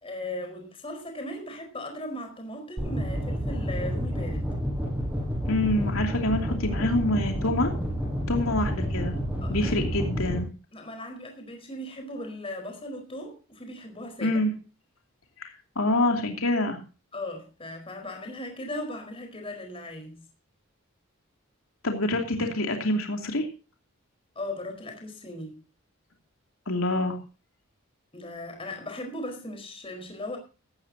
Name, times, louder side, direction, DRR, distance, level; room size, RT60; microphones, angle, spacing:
voice 1, 0.0-4.4 9.4-9.8 10.7-14.4 17.1-20.2 24.3-25.6 28.1-30.4, left 1 dB, 25° left, 4.7 m, -37 dB
sound 1, 2.8-10.4, equal, 5° right, 7.4 m, -29 dB
voice 2, 5.4-7.7 8.3-9.1 9.5-10.5 14.2-14.5 15.4-16.8 21.8-23.5 26.7-27.2, left 1 dB, 80° left, 2.8 m, -26 dB
17.5 x 14.5 x 2.9 m
head